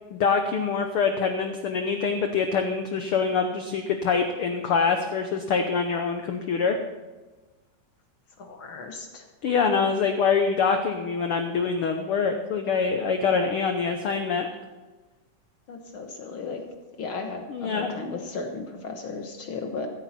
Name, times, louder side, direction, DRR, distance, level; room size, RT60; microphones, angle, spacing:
voice 1, 0.1-6.8 9.4-14.5 17.5-17.9, left 5 dB, 80° left, 6 dB, 1.2 m, -25 dB
voice 2, 8.4-9.3 15.7-16.6 17.0-19.9, left 4 dB, 55° left, 4 dB, 1.4 m, -35 dB
15.0 x 13.5 x 4.3 m, 1.2 s
omnidirectional pair, 3.7 m